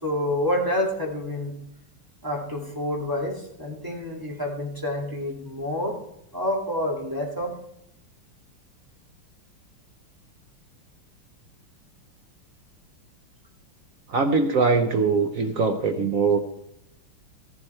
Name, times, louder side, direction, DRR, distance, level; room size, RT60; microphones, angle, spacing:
voice 1, 0.0-1.5 2.2-5.9 6.3-7.5, left 1 dB, 10° right, -1 dB, 2.0 m, -28 dB
voice 2, 14.1-16.4, right 4 dB, 70° right, 6 dB, 0.8 m, -22 dB
14.0 x 11.0 x 4.3 m, 0.78 s
omnidirectional pair, 2.3 m